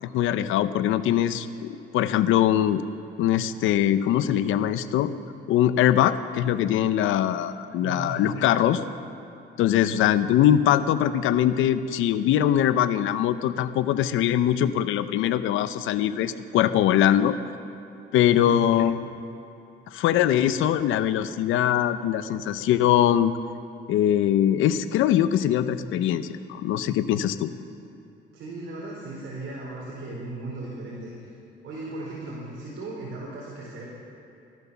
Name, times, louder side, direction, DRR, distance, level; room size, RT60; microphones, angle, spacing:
voice 1, 0.0-2.8 3.2-5.1 5.5-8.8 9.6-17.4 18.1-18.9 19.9-23.3 23.9-27.5, left 11 dB, 90° left, 12 dB, 0.7 m, -22 dB
voice 2, 7.8-8.4 18.2-18.9 28.3-31.3 31.6-33.8, right 2 dB, 70° right, -5 dB, 4.3 m, -37 dB
16.5 x 12.5 x 7.0 m, 2.8 s
cardioid pair, 90°, 20 cm